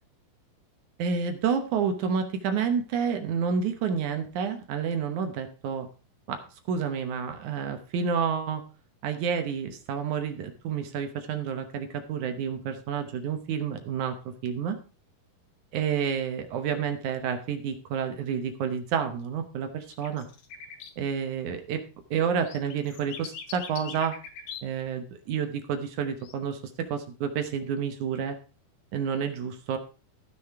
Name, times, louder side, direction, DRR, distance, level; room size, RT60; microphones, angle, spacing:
voice 1, 1.0-5.9 6.3-6.4 6.7-8.6 9.0-14.8 15.7-20.3 21.0-21.8 22.1-24.2 24.6-28.4 28.9-29.8, right 7 dB, 65° right, 7 dB, 2.1 m, -29 dB
sound 1, 19.8-20.9 22.4-24.8 26.2-26.3, left 7 dB, 85° left, 3.4 m, -41 dB
14.5 x 6.1 x 4.7 m, 0.34 s
omnidirectional pair, 4.4 m